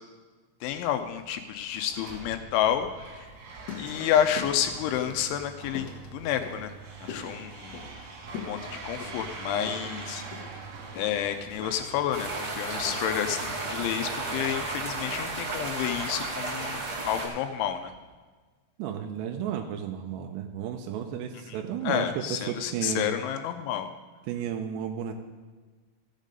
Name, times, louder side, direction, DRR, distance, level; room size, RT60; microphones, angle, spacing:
voice 1, 0.6-3.2 3.8-6.7 7.0-7.8 8.5-10.2 10.9-17.9 21.5-21.6 21.8-23.9, left 10 dB, 85° left, 7 dB, 3.0 m, -30 dB
sound 1, 0.6-18.1, right 4 dB, 65° right, 3.6 m, -45 dB
sound 2, 3.2-15.5, left 6 dB, 65° left, 2.1 m, -45 dB
sound 3, 12.1-17.3, right 3 dB, 50° right, 1.7 m, -33 dB
voice 2, 18.8-23.2 24.3-25.1, right 8 dB, 80° right, 4 dB, 2.5 m, -33 dB
14.5 x 7.4 x 5.2 m, 1.4 s
omnidirectional pair, 5.6 m